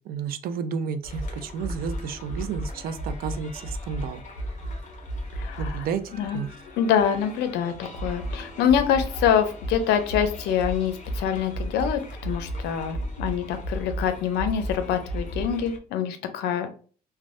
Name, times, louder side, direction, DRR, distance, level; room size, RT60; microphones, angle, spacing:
voice 1, 0.1-4.2 5.6-6.0 6.3-6.5, right 6 dB, 60° right, 11 dB, 0.4 m, -31 dB
sound 1, 1.0-15.8, equal, 45° left, 0.8 m, -34 dB
voice 2, 5.3-5.9 6.1-6.4 6.8-16.7, left 8 dB, 80° left, 8 dB, 0.5 m, -25 dB
3.2 x 2.2 x 2.5 m, 0.41 s
cardioid pair, 110°, 17 cm